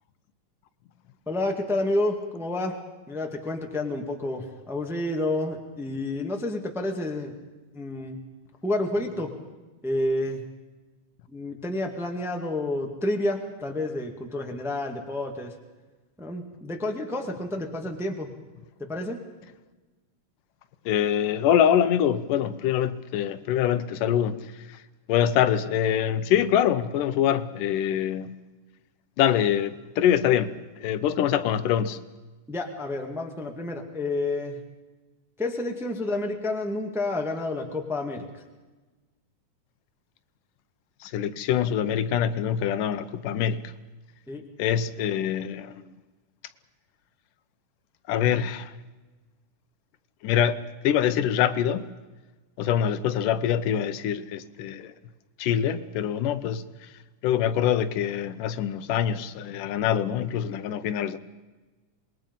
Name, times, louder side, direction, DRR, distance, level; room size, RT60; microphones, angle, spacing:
voice 1, 1.3-2.7 3.1-7.3 7.7-8.2 8.6-9.3 9.8-10.4 11.3-15.5 16.2-18.3 18.8-19.2 32.5-34.6 35.4-38.2 44.3-44.4, left 2 dB, ahead, 1.1 m, -29 dB
voice 2, 20.9-24.4 25.1-28.3 29.2-30.6 30.8-32.0 41.0-43.7 44.6-45.7 48.1-48.7 50.2-51.9 52.6-54.9 55.4-56.6 57.2-61.2, left 9 dB, 90° left, 2.5 m, -24 dB
26.5 x 21.0 x 5.4 m
omnidirectional pair, 3.6 m